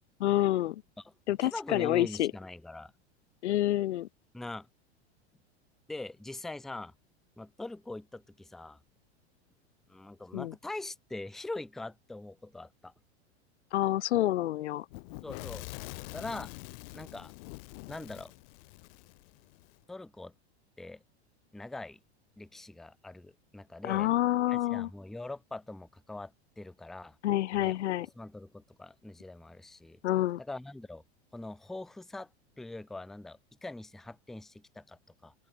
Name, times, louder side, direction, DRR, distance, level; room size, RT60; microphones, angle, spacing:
voice 1, 0.2-0.8 1.3-2.3 3.4-4.1 10.3-10.5 13.7-14.9 23.8-24.9 27.2-28.1 30.0-30.4, left 14 dB, 85° left, 0.5 m, -28 dB
voice 2, 1.4-2.9 4.3-4.7 5.9-6.9 7.4-8.8 9.9-12.9 15.2-15.7 16.1-16.5 16.9-17.3 17.9-18.3 19.9-20.3 20.8-21.0 21.5-22.0 22.4-24.1 24.5-27.2 27.5-27.7 28.2-30.0 30.4-31.0 31.3-32.3 32.6-35.3, left 2 dB, ahead, 0.4 m, -42 dB
Fire / Explosion, 14.9-19.8, left 26 dB, 55° left, 0.9 m, -45 dB
open air
hypercardioid pair, 100°, 33 cm